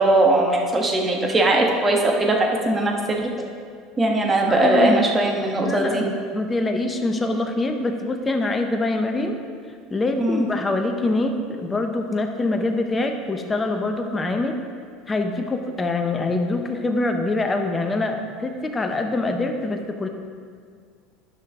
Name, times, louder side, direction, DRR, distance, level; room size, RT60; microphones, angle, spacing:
voice 1, 0.0-3.3 4.0-6.0 10.2-10.4, right 2 dB, 20° right, 1 dB, 1.4 m, -20 dB
voice 2, 4.6-5.0 5.6-9.4 9.9-14.5 15.1-20.1, left 2 dB, 20° left, 4 dB, 0.9 m, -24 dB
10.5 x 5.8 x 3.7 m, 2.1 s
hypercardioid pair, 85°, 0 cm